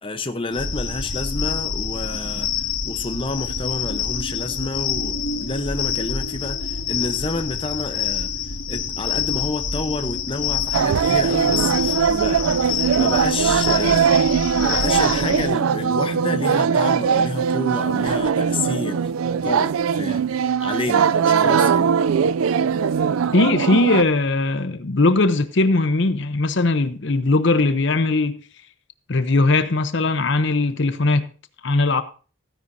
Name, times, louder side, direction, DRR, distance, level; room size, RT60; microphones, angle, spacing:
voice 1, 0.0-8.3 8.7-14.1 14.6-19.1 19.4-21.9, left 3 dB, 25° left, 0.9 m, -29 dB
sound 1, 0.5-15.5, left 6 dB, 75° left, 1.9 m, -27 dB
sound 2, 10.7-24.0, right 6 dB, 90° right, 0.4 m, -20 dB
voice 2, 23.3-28.4 29.1-31.3 31.6-32.0, left 2 dB, 60° left, 0.8 m, -19 dB
15.5 x 10.0 x 2.7 m
head